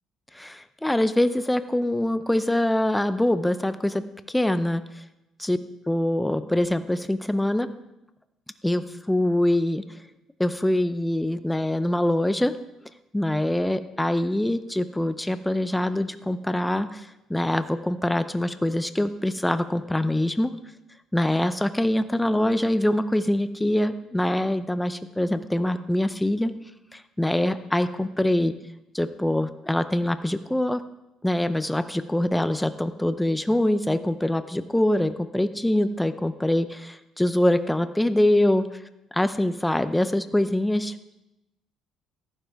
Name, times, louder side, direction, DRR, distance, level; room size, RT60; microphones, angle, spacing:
voice 1, 0.3-4.0 4.3-4.8 5.4-5.6 5.9-7.7 8.6-9.8 10.4-12.6 13.1-20.5 21.1-26.5 26.9-28.5 28.9-30.8 31.2-38.7 39.1-40.9, left 1 dB, 5° left, 11 dB, 0.5 m, -24 dB
14.0 x 11.5 x 3.5 m, 0.91 s
cardioid pair, 125°, 0 cm